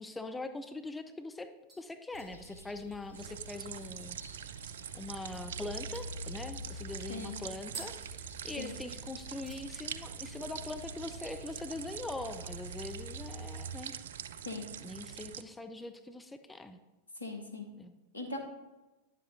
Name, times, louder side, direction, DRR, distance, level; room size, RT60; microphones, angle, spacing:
voice 1, 0.0-1.5 1.8-4.2 4.6-13.9 14.8-16.8 17.7-18.0, left 2 dB, 10° left, 8 dB, 0.4 m, -42 dB
sound 1, 1.2-1.4 1.7-4.5 4.9-5.0 5.3-5.5 5.9-8.9 9.2-9.7 10.0-10.4 10.7-10.8 12.9-13.5 13.9-14.6 15.0-15.3 15.8-16.7 17.1-17.2, right 3 dB, 20° right, 1.4 m, -54 dB
sound 2, 2.1-13.8, equal, 85° right, 0.8 m, -48 dB
sound 3, 3.1-15.4, right 9 dB, 60° right, 0.3 m, -44 dB
voice 2, 17.2-17.6 18.1-18.4, left 2 dB, 80° left, 3 dB, 1.1 m, -39 dB
9.9 x 7.4 x 2.6 m, 1.1 s
figure-of-eight pair, 90°, 0 cm